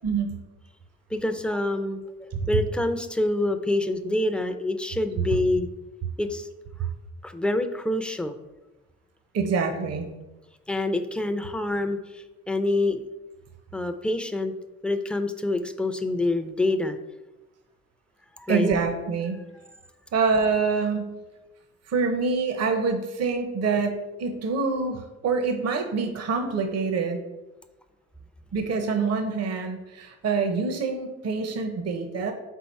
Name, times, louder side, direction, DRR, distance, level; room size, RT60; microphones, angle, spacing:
voice 1, 0.0-0.4 2.3-2.4 9.3-10.1 18.5-19.4 20.1-21.1 21.9-27.2 28.5-32.3, right 4 dB, 55° right, 6 dB, 0.8 m, -26 dB
voice 2, 1.1-2.0 2.5-5.7 6.2-6.5 7.2-8.4 10.7-13.0 13.7-14.5 14.8-17.0 18.4-18.7, left 2 dB, 5° left, 8 dB, 0.5 m, -26 dB
4.6 x 3.9 x 5.3 m, 1.1 s
cardioid pair, 90°, 30 cm